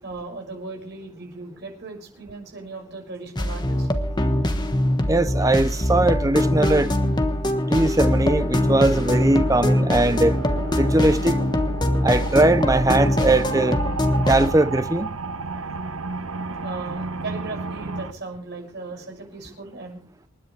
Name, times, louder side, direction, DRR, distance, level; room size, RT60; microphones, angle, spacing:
voice 1, 0.0-3.9 16.6-20.0, right 3 dB, 50° right, 6.3 m, -37 dB
sound 1, 3.4-14.5, left 1 dB, 20° left, 1.2 m, -23 dB
voice 2, 5.1-6.9 7.7-10.3 10.7-11.4 12.0-13.8 14.3-15.2, right 2 dB, 15° right, 0.6 m, -20 dB
sound 2, 7.4-18.1, right 3 dB, 70° right, 1.1 m, -33 dB
28.5 x 10.0 x 3.3 m
head